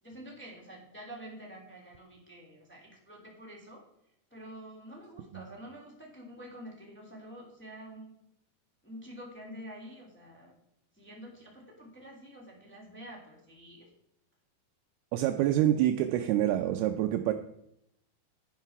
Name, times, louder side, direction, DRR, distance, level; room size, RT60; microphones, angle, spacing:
voice 1, 0.0-3.8 4.3-8.2 8.8-10.5 10.9-13.9, equal, 5° left, -3 dB, 2.6 m, -48 dB
voice 2, 15.1-17.3, right 12 dB, 80° right, 6 dB, 2.5 m, -26 dB
10.5 x 10.5 x 4.7 m, 0.78 s
omnidirectional pair, 4.6 m